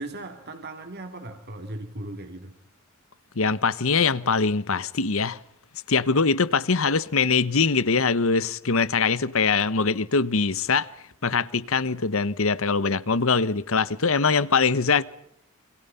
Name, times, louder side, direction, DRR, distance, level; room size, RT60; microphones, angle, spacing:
voice 1, 0.0-2.5, right 2 dB, 50° right, 2.5 m, -37 dB
voice 2, 3.4-5.4 5.9-10.9 11.2-15.0, left 4 dB, 65° left, 1.1 m, -22 dB
28.5 x 25.0 x 5.7 m
head